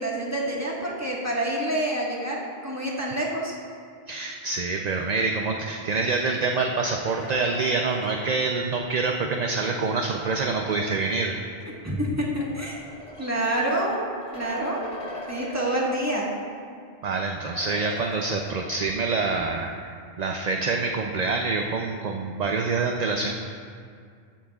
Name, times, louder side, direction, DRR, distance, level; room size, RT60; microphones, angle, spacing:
voice 1, 0.0-3.5 11.8-12.8 13.2-14.0 14.3-14.9 15.3-16.3, right 1 dB, 15° right, -4 dB, 1.5 m, -27 dB
voice 2, 4.1-11.4 17.0-23.3, right 3 dB, 50° right, 2 dB, 0.6 m, -26 dB
sound 1, 6.6-11.3 12.2-16.4 16.7-16.8 17.4-19.0, equal, 30° left, 1.1 m, -41 dB
15.0 x 10.5 x 2.4 m, 2.2 s
omnidirectional pair, 1.1 m